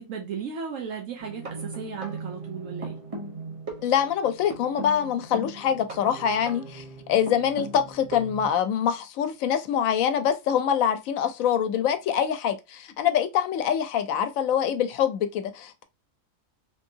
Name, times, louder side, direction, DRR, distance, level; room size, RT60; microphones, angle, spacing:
voice 1, 0.0-3.0, right 6 dB, 80° right, 1.1 m, -35 dB
sound 1, 1.2-8.5, right 3 dB, 35° right, 0.7 m, -38 dB
voice 2, 3.8-15.8, left 9 dB, 90° left, 1.0 m, -25 dB
3.3 x 2.7 x 2.7 m
omnidirectional pair, 1.4 m